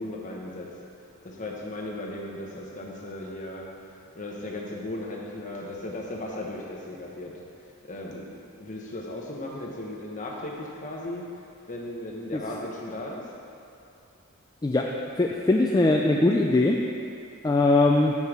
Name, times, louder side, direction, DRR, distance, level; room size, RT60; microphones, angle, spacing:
voice 1, 0.0-3.7 4.1-13.3, left 1 dB, 35° left, -2 dB, 1.0 m, -37 dB
voice 2, 15.2-16.8 17.4-18.2, left 2 dB, 20° left, 0 dB, 0.3 m, -21 dB
6.6 x 5.4 x 6.1 m, 2.7 s
head